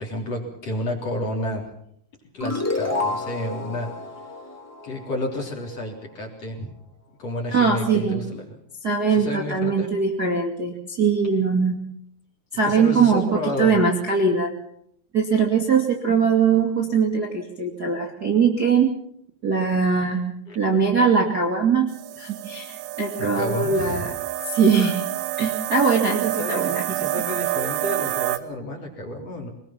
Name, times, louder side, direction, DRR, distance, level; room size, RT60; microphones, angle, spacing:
voice 1, 0.0-1.7 2.3-3.9 4.8-6.7 7.2-8.6 9.1-9.9 12.6-13.7 20.5-20.6 23.2-24.1 26.3-29.5, left 1 dB, 35° left, 0 dB, 4.3 m, -31 dB
sound 1, 2.4-5.6, left 2 dB, 5° left, 1.6 m, -29 dB
voice 2, 7.5-8.2 8.8-11.7 12.5-14.5 15.1-18.9 19.4-20.2 20.5-21.9 22.2-24.1 24.4-25.0 25.4-26.8, right 5 dB, 30° right, -1 dB, 2.1 m, -21 dB
sound 2, 21.9-28.4, right 15 dB, 80° right, 3.1 m, -28 dB
24.0 x 20.5 x 5.9 m, 0.69 s
omnidirectional pair, 5.0 m